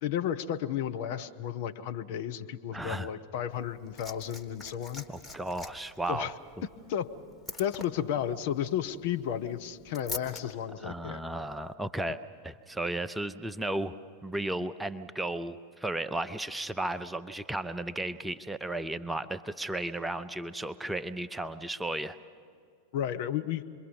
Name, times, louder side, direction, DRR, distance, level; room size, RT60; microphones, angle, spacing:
voice 1, 0.0-5.0 6.1-6.3 6.9-7.1 7.6-11.2 22.9-23.6, left 10 dB, 50° left, 8 dB, 0.9 m, -33 dB
voice 2, 2.7-3.1 5.1-6.3 10.4-10.5 10.8-12.2 12.4-13.9 14.2-22.2, right 1 dB, 5° right, 11 dB, 0.6 m, -34 dB
Liquid, 3.5-10.4 11.5-11.6, left 3 dB, 10° left, 1.6 m, -45 dB
27.5 x 22.5 x 5.4 m, 2.3 s
figure-of-eight pair, 90°, 0 cm